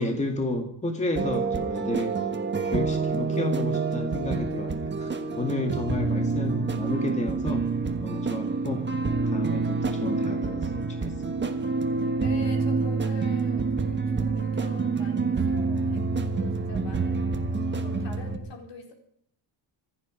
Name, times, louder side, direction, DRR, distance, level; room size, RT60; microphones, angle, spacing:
voice 1, 0.0-2.2 2.6-7.7 8.0-8.8 9.3-11.6, left 2 dB, 15° left, 3 dB, 2.2 m, -31 dB
sound 1, 1.2-18.4, right 4 dB, 20° right, 1.4 m, -27 dB
voice 2, 12.2-17.3 17.7-18.9, left 3 dB, 60° left, 3 dB, 4.3 m, -44 dB
26.0 x 9.9 x 5.2 m, 0.68 s
cardioid pair, 155°, 48 cm